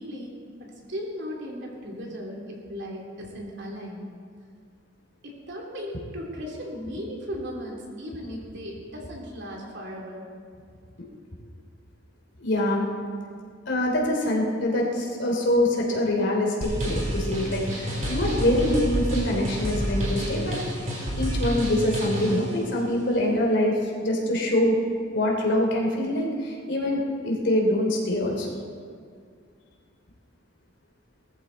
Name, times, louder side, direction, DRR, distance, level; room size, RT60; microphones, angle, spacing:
voice 1, 0.0-4.1 5.2-10.3, equal, 65° right, -2 dB, 3.2 m, -37 dB
voice 2, 12.4-12.9 13.7-20.6 21.2-24.8 25.1-28.5, left 1 dB, 65° left, 0 dB, 3.1 m, -24 dB
sound 1, 16.6-22.4, equal, 40° right, 4.1 m, -29 dB
20.0 x 14.0 x 4.2 m, 2.1 s
head